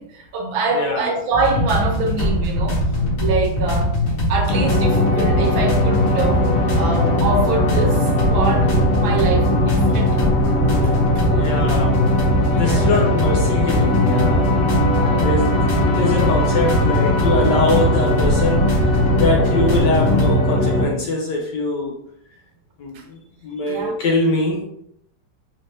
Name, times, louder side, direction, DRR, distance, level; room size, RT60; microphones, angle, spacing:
voice 1, 0.0-2.8 3.2-3.9 4.3-10.2 10.5-10.6 10.8-11.6 12.5-13.1 15.0-15.3 22.9-23.0 23.7-24.0, right 3 dB, 75° right, 3 dB, 1.3 m, -25 dB
voice 2, 0.7-1.1 11.1-14.5 15.1-15.5 15.8-21.9 22.8-24.6, left 2 dB, 70° left, -1 dB, 1.1 m, -23 dB
sound 1, 1.3-20.3, equal, 40° left, 1.2 m, -21 dB
sound 2, 4.5-20.8, left 1 dB, 85° left, 1.7 m, -20 dB
4.1 x 2.5 x 3.2 m, 0.72 s
omnidirectional pair, 2.3 m